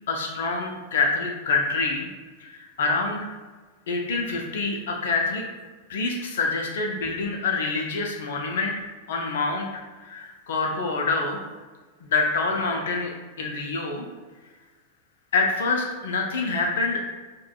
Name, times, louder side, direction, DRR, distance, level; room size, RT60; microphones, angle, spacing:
voice 1, 0.1-2.1 2.4-3.3 3.9-5.4 5.9-8.7 9.1-11.4 12.0-13.1 13.4-14.0 15.3-17.2, left 3 dB, 60° left, 1 dB, 0.5 m, -26 dB
4.8 x 2.2 x 2.2 m, 1.3 s
figure-of-eight pair, 90°, 0 cm